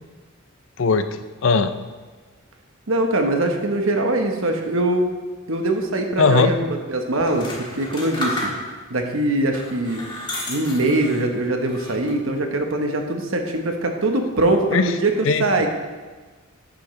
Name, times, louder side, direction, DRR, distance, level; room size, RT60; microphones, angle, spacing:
voice 1, 0.8-1.7 6.2-6.5 14.7-14.9 15.2-15.7, left 4 dB, 60° left, 10 dB, 0.5 m, -19 dB
voice 2, 2.9-5.1 5.5-8.5 8.9-10.0 10.5-15.7, right 2 dB, 65° right, 4 dB, 1.2 m, -22 dB
sound 1, 7.2-8.9 9.5-11.3 11.7-12.3, left 1 dB, 20° left, 1.6 m, -32 dB
10.0 x 8.9 x 3.3 m, 1.4 s
head